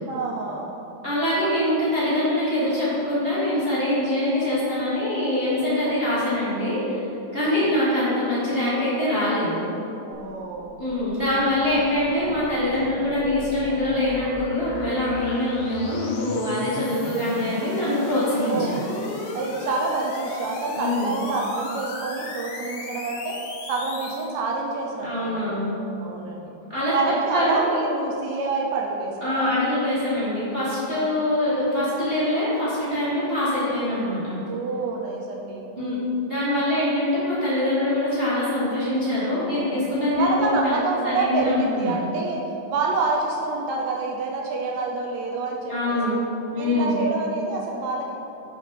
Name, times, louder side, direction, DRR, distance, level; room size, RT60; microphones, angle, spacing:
voice 1, 0.1-0.7 5.8-6.0 7.5-7.7 10.0-10.7 12.7-12.9 18.4-18.8 19.3-23.4 23.6-25.5 26.0-26.5 26.9-29.5 34.5-36.1 39.4-39.9 40.2-42.4 42.7-46.2 46.6-48.2, right 3 dB, 80° right, -1 dB, 1.8 m, -27 dB
voice 2, 1.0-7.0 7.3-9.6 10.8-18.8 20.7-21.1 25.0-25.7 26.7-26.9 27.3-27.6 29.2-34.3 35.8-35.9 36.3-40.7 41.0-41.9 45.7-46.1 46.5-47.0, left 1 dB, 50° right, -10 dB, 0.6 m, -24 dB
sound 1, 10.1-24.3, left 2 dB, 70° left, 1.4 m, -36 dB
5.9 x 5.5 x 5.3 m, 3.0 s
omnidirectional pair, 3.5 m